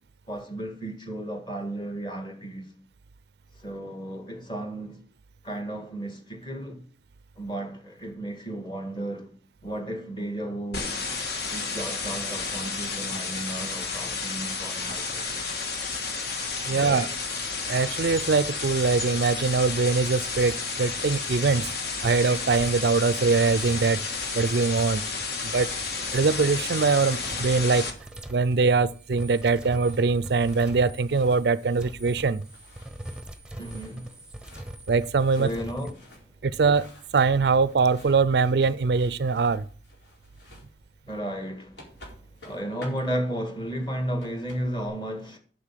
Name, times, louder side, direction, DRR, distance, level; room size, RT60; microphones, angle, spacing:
voice 1, 0.3-2.7 3.6-5.0 5.4-6.9 7.4-9.3 9.6-11.0 11.5-15.4 16.7-17.1 33.6-34.1 35.3-36.1 41.1-41.8 42.4-45.4, right 1 dB, 25° left, 1.8 m, -34 dB
sound 1, 10.7-27.9, left 4 dB, 60° left, 1.7 m, -31 dB
voice 2, 16.7-17.1 17.7-21.7 22.0-24.0 24.3-25.0 25.4-25.7 26.1-27.9 28.3-32.4 34.9-35.5 36.4-39.6, right 4 dB, 65° right, 0.4 m, -22 dB
sound 2, 18.3-18.9 19.2-19.5 20.3-35.9, right 1 dB, 5° right, 0.8 m, -44 dB
sound 3, 28.7-44.9, left 1 dB, 75° left, 4.3 m, -53 dB
8.4 x 6.9 x 7.4 m
head